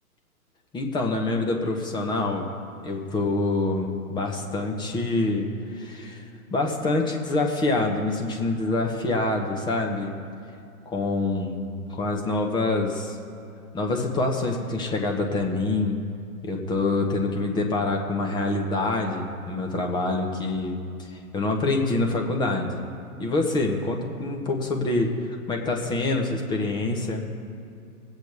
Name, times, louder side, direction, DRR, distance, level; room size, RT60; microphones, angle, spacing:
voice 1, 0.7-2.5 2.8-6.2 6.5-10.1 10.9-13.2 13.7-16.0 16.4-20.8 21.1-22.8 23.2-27.3, left 2 dB, 10° left, 2 dB, 0.9 m, -26 dB
20.0 x 8.2 x 3.5 m, 2.5 s
hypercardioid pair, 130°, 45 cm